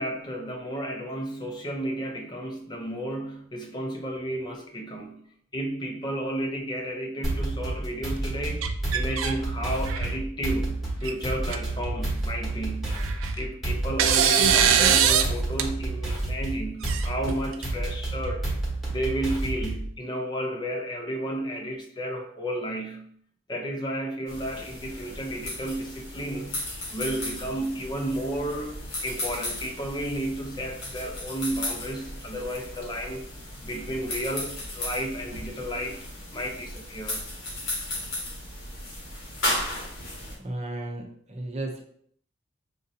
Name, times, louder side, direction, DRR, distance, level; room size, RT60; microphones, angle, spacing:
voice 1, 0.0-5.2 5.5-13.0 13.4-18.5 18.9-23.1 23.5-26.6 26.9-28.7 29.0-33.3 33.6-36.0 36.3-37.2, right 1 dB, 20° left, 1 dB, 0.5 m, -32 dB
sound 1, 7.2-19.9, right 2 dB, ahead, 1.1 m, -30 dB
sound 2, 8.6-9.3 9.8-10.2 11.0-11.1 11.5-11.6 12.9-13.5 14.0-15.3 15.6-15.7 16.8-17.6, right 8 dB, 85° right, 0.4 m, -22 dB
sound 3, 24.3-40.3, left 1 dB, 70° left, 1.3 m, -35 dB
voice 2, 40.4-41.0 41.3-41.8, right 1 dB, 35° right, 1 dB, 0.7 m, -33 dB
6.0 x 2.6 x 2.7 m, 0.63 s
head